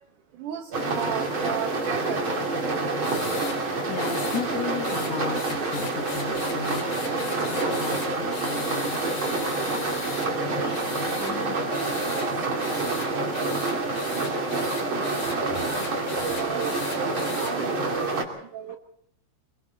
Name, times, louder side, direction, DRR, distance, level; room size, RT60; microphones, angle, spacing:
sound 1, 0.7-18.2, right 3 dB, 30° right, 2.8 m, -27 dB
voice 1, 0.9-2.2 15.6-15.9 16.2-18.2 18.5-18.8, right 8 dB, 80° right, 3 dB, 1.8 m, -34 dB
sound 2, 3.0-3.6 4.0-4.4 4.8-10.3 10.7-11.3 11.7-12.3 12.6-17.5, left 4 dB, 55° left, 6.4 m, -38 dB
voice 2, 3.9-12.0 14.2-14.3 15.5-15.6 17.1-17.2 18.3-18.4 18.7-18.8, left 7 dB, 75° left, 5 dB, 1.5 m, -37 dB
27.5 x 23.5 x 4.1 m, 0.66 s
omnidirectional pair, 5.5 m